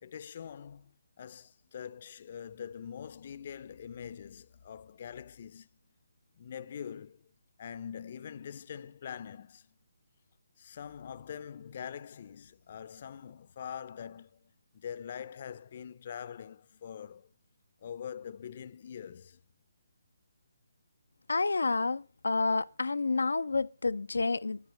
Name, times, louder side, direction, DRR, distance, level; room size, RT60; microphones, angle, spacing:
voice 1, 0.0-5.7 6.4-7.2 7.6-9.7 10.6-17.3 17.8-19.4, left 8 dB, 45° left, 0.7 m, -44 dB
voice 2, 21.3-24.6, left 3 dB, 80° left, 0.6 m, -29 dB
12.0 x 10.5 x 7.6 m
figure-of-eight pair, 150°, 0 cm